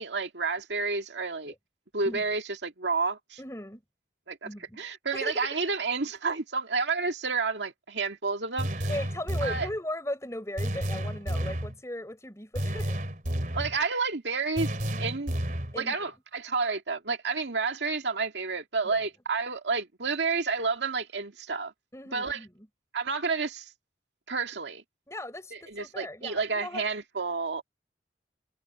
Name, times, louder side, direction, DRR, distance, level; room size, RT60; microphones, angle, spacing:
voice 1, 0.0-1.5 1.9-3.4 4.3-4.5 4.8-8.9 9.4-9.7 13.5-14.7 15.0-15.3 15.8-21.7 22.1-22.4 22.9-23.7 24.3-24.8 25.7-27.6, right 4 dB, 85° right, 2.1 m, -30 dB
voice 2, 3.4-3.8 4.4-4.8 5.1-5.5 8.9-13.0 15.7-16.1 18.8-19.0 21.9-22.7 25.1-26.9, left 1 dB, 15° left, 4.7 m, -37 dB
sound 1, 8.6-9.8 10.6-11.7 12.6-13.8 14.6-15.8, equal, 50° right, 3.2 m, -31 dB
head